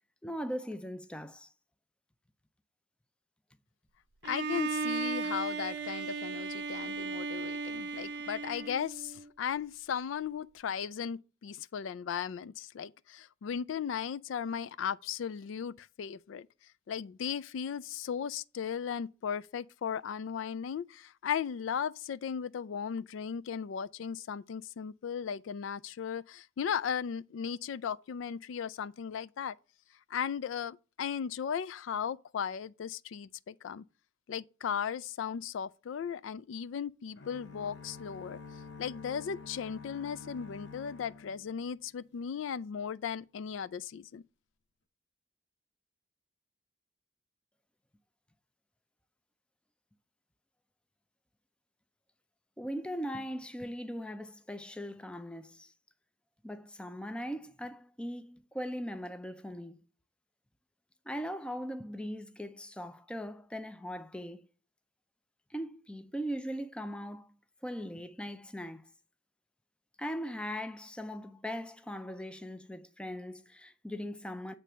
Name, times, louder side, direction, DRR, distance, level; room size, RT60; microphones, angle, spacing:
voice 1, 0.2-1.5 52.6-55.7 56.4-59.8 61.1-64.4 65.5-67.3 67.6-68.8 70.0-74.5, equal, 5° left, 0.4 m, -39 dB
voice 2, 4.2-16.5 16.9-29.6 30.1-33.8 34.3-38.4 38.8-44.2, left 7 dB, 80° left, 0.3 m, -36 dB
Bowed string instrument, 4.2-9.3, right 4 dB, 55° right, 0.6 m, -36 dB
sound 1, 37.2-42.1, left 4 dB, 65° left, 0.8 m, -49 dB
8.4 x 3.3 x 6.2 m
head